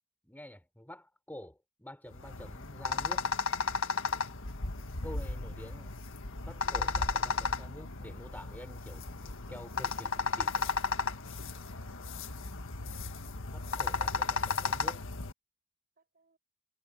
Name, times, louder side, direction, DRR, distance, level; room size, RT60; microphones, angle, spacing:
voice 1, 0.2-3.3 5.0-6.0 6.4-10.7 13.5-15.0, left 1 dB, 10° left, 5.7 m, -48 dB
sound 1, 2.1-15.3, left 4 dB, 65° left, 1.7 m, -34 dB
voice 2, 11.4-12.1 13.6-14.6 16.0-16.4, right 3 dB, 45° right, 5.8 m, -66 dB
head